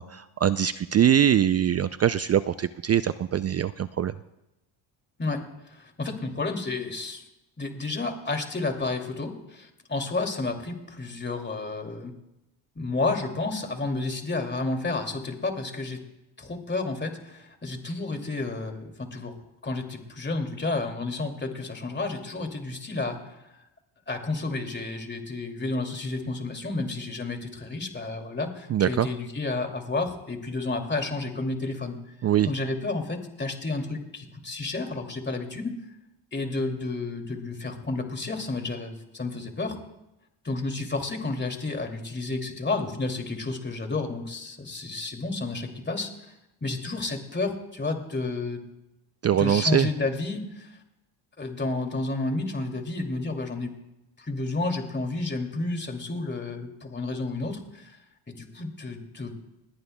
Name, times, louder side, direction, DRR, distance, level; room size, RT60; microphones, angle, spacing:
voice 1, 0.0-4.1 28.7-29.1 32.2-32.5 49.2-49.9, right 10 dB, 35° right, 13 dB, 0.4 m, -23 dB
voice 2, 5.2-7.2 7.6-12.1 12.8-16.0 16.4-19.3 19.6-23.6 24.1-32.0 32.5-35.7 36.3-39.8 40.4-46.3 46.6-48.6 49.4-50.8 51.4-53.7 54.2-58.0 58.3-59.3, left 3 dB, 20° left, 4 dB, 2.5 m, -31 dB
20.5 x 17.5 x 2.2 m, 0.91 s
cardioid pair, 80°, 48 cm